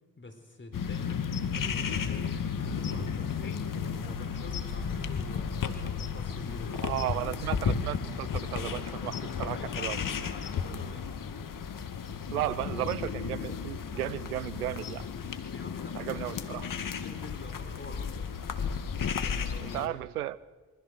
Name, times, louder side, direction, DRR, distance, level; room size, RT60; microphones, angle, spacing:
voice 1, 0.2-6.9 9.4-11.2 15.4-18.3 19.2-20.0, left 2 dB, 25° left, 7 dB, 4.4 m, -46 dB
sound 1, 0.7-19.9, left 6 dB, 50° left, 2.3 m, -34 dB
voice 2, 6.8-10.0 12.3-15.1 16.0-16.6 19.6-20.4, right 14 dB, 90° right, 21 dB, 0.6 m, -34 dB
27.5 x 24.5 x 6.6 m, 1.4 s
hypercardioid pair, 45°, 43 cm